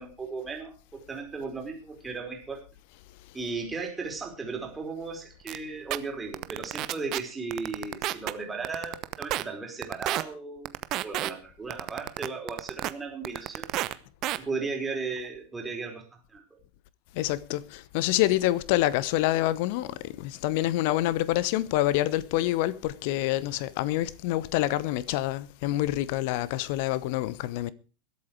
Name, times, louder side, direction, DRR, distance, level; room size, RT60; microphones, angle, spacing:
voice 1, 0.0-2.6 3.3-10.7 11.0-13.7 14.4-16.6, right 4 dB, 10° right, 4.9 m, -36 dB
sound 1, 5.5-5.6 5.9-6.0 6.3-7.2 7.5-8.3 8.6-9.4 9.8-10.2 10.7-11.3 11.7-12.9 13.2-13.9 14.2-14.4, right 16 dB, 35° right, 0.9 m, -29 dB
voice 2, 17.1-27.7, left 15 dB, 45° left, 0.9 m, -27 dB
21.0 x 8.5 x 4.9 m
figure-of-eight pair, 90°, 0 cm